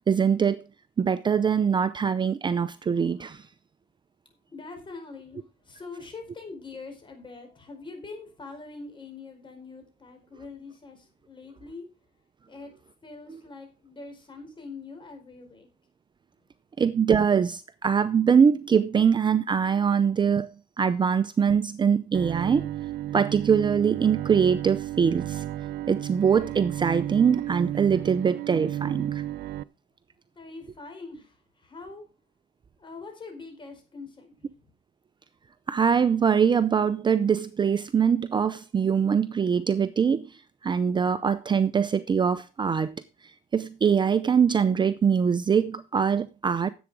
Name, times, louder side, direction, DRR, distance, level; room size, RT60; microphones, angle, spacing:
voice 1, 0.1-0.6 1.0-3.4 16.8-20.5 20.8-22.7 23.1-25.4 25.9-29.2 35.7-40.3 40.6-42.9 43.5-46.7, right 7 dB, 25° right, 0.6 m, -23 dB
voice 2, 4.5-11.9 12.5-12.7 13.0-15.7 30.3-32.0 32.8-34.7, left 3 dB, 30° left, 4.7 m, -43 dB
Bowed string instrument, 22.1-29.6, right 13 dB, 70° right, 0.5 m, -33 dB
11.0 x 8.1 x 4.8 m
cardioid pair, 110°, 17 cm